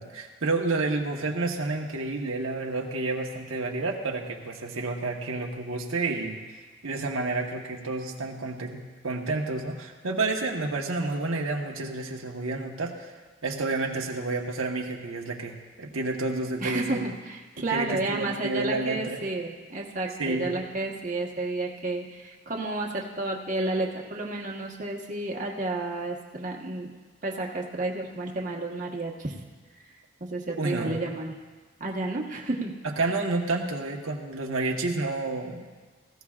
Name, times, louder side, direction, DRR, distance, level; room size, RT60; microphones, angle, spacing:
voice 1, 0.0-6.4 6.8-13.1 13.4-17.1 17.7-19.2 20.2-20.6 30.6-31.0 32.8-35.6, right 3 dB, 90° right, 0 dB, 1.3 m, -30 dB
voice 2, 16.6-26.9 27.2-29.3 29.8-29.9 30.2-31.3 31.8-32.8 33.0-33.3, right 2 dB, 40° right, -1 dB, 1.3 m, -31 dB
18.5 x 16.0 x 2.5 m, 1.4 s
head